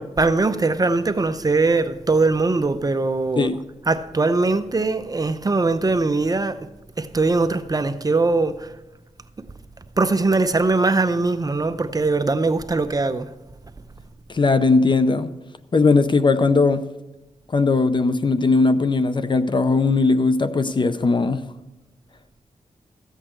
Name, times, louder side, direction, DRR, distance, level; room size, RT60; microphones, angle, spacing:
voice 1, 0.0-3.5 3.9-6.6 7.0-8.7 10.0-13.3, right 3 dB, 30° right, 0.6 m, -21 dB
voice 2, 14.3-15.3 15.7-16.8 17.5-21.4, left 3 dB, 35° left, 0.6 m, -18 dB
14.0 x 8.2 x 4.5 m
wide cardioid pair, 90°, 13 cm